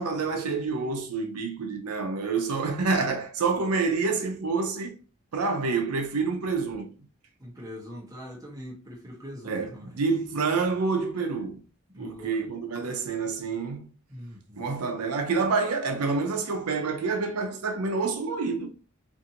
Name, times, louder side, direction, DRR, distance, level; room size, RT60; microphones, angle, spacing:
voice 1, 0.0-5.0 5.3-6.9 9.4-9.7 10.0-11.6 12.0-13.9 14.6-18.7, right 4 dB, 85° right, 0.5 m, -28 dB
voice 2, 7.4-10.0 11.9-12.5 14.1-14.6, equal, 15° right, 0.8 m, -42 dB
2.6 x 2.5 x 2.8 m
head